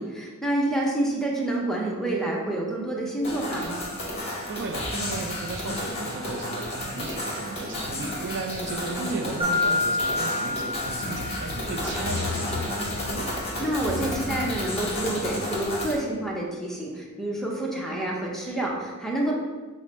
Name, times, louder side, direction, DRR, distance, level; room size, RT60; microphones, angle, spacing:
voice 1, 0.0-3.9 9.0-9.3 11.8-12.3 13.6-19.3, right 1 dB, ahead, -2 dB, 0.6 m, -28 dB
sound 1, 3.2-16.0, left 1 dB, 30° left, 1.0 m, -32 dB
voice 2, 4.5-13.3, right 4 dB, 55° right, 4 dB, 0.4 m, -36 dB
Mallet percussion, 9.4-12.0, left 2 dB, 25° right, 0.9 m, -28 dB
sound 2, 10.8-15.8, left 4 dB, 50° left, 0.3 m, -38 dB
5.9 x 2.0 x 4.1 m, 1.3 s
head